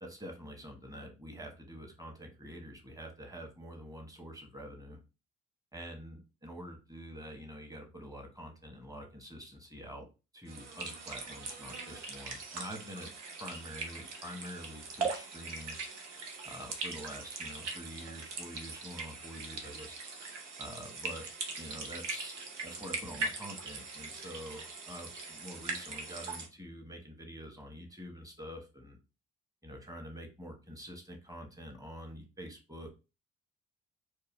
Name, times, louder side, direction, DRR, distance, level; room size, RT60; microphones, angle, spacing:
voice 1, 0.0-5.0 5.7-10.1 10.3-13.1 13.4-15.8 16.4-20.0 20.6-21.3 21.6-29.0 29.6-32.9, equal, 10° right, 2 dB, 1.4 m, -46 dB
sound 1, 10.5-26.5, right 4 dB, 85° right, 0.7 m, -41 dB
4.5 x 2.4 x 3.5 m, 0.29 s
figure-of-eight pair, 45°, 35 cm